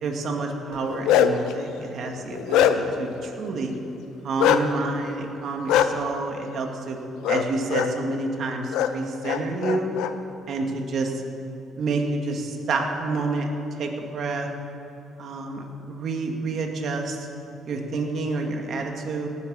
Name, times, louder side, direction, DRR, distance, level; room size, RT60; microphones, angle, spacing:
voice 1, 0.0-3.7 4.2-7.0 7.3-9.9 10.5-11.2 11.8-13.5 13.8-14.5 15.2-17.3 17.6-19.3, right 3 dB, 60° right, 2 dB, 2.1 m, -28 dB
Bark, 0.7-1.5 2.0-3.0 4.4-4.6 5.7-5.9 7.2-7.4 7.7-7.9 8.7-8.9 9.2-10.1, left 10 dB, 90° left, 0.8 m, -21 dB
18.0 x 9.5 x 6.4 m, 2.9 s
cardioid pair, 100°, 0 cm